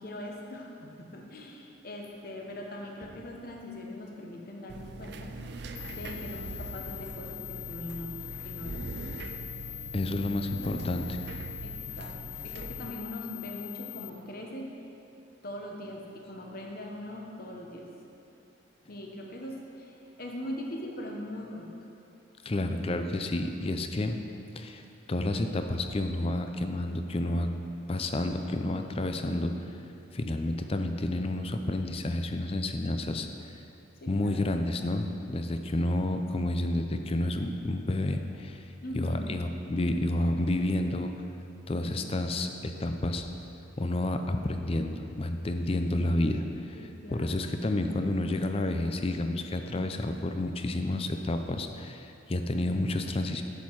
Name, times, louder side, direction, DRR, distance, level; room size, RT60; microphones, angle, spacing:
voice 1, 0.0-5.4 5.9-9.1 10.5-10.9 11.6-14.8 15.4-17.9 18.9-21.7 34.0-34.4 38.8-39.3 46.7-47.4, left 1 dB, 50° left, 0 dB, 1.1 m, -41 dB
sound 1, 4.7-12.9, right 3 dB, 60° right, 0.5 m, -42 dB
sound 2, 5.8-14.1, left 13 dB, 85° left, 0.5 m, -42 dB
voice 2, 9.9-11.0 22.4-24.2 24.6-27.5 27.9-29.5 30.1-33.3 34.1-38.6 38.9-41.1 41.7-43.3 43.8-53.4, left 1 dB, 30° left, 6 dB, 0.5 m, -30 dB
8.3 x 7.6 x 4.7 m, 2.8 s
head